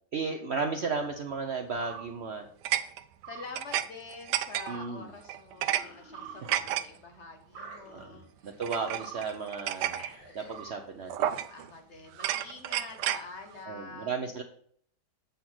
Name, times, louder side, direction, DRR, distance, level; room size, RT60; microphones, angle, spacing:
voice 1, 0.1-2.5 4.7-5.1 7.9-8.2 8.4-10.0 10.3-11.3 13.7-14.4, right 4 dB, 60° right, 4 dB, 0.7 m, -34 dB
sound 1, 1.8-2.1 2.6-3.9 4.1-4.9 5.3-5.8 6.1-6.8 7.5-7.8 8.6-10.1 10.5-10.7 11.1-11.7 12.1-13.2, right 12 dB, 90° right, 1.2 m, -32 dB
voice 2, 3.3-8.6 11.5-14.1, left 4 dB, 45° left, 4 dB, 1.2 m, -46 dB
sound 2, 5.5-7.0 7.5-8.3 8.6-9.5 9.8-10.8, left 1 dB, 25° left, 1.8 m, -51 dB
8.3 x 4.0 x 6.0 m, 0.62 s
omnidirectional pair, 1.8 m